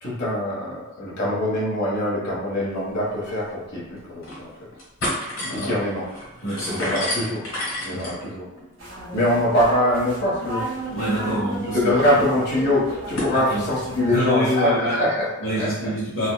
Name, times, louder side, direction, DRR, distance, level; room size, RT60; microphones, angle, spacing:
voice 1, 0.0-4.5 5.5-6.0 6.7-7.5 7.8-8.5 9.1-10.6 11.2-11.3 11.7-15.3 15.5-15.9, left 1 dB, 55° left, -6 dB, 1.3 m, -23 dB
sound 1, 3.0-3.1 3.4-3.5 4.0-4.4 4.7-13.4, left 1 dB, 90° left, 1.4 m, -33 dB
voice 2, 5.4-5.8 6.4-7.0 7.9-8.0 10.8-11.9 13.3-13.7 14.0-15.0 15.4-16.3, equal, 70° left, -8 dB, 0.9 m, -26 dB
sound 2, 8.8-14.2, right 1 dB, 85° right, 1.4 m, -34 dB
4.0 x 2.2 x 2.2 m, 1.0 s
head